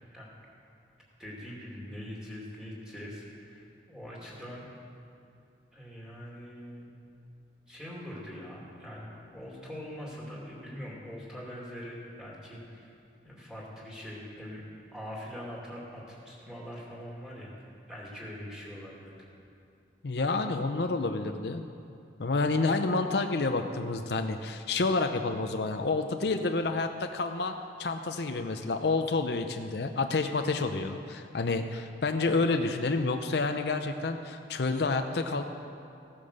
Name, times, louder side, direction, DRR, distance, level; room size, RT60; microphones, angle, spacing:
voice 1, 1.2-4.6 5.7-6.9 7.7-12.9 13.2-14.6 14.9-17.5 17.9-19.2, equal, 5° right, -5 dB, 2.5 m, -43 dB
voice 2, 20.0-21.6 22.2-27.5 27.8-35.4, left 3 dB, 60° left, 6 dB, 0.6 m, -29 dB
15.5 x 8.7 x 6.6 m, 2.5 s
head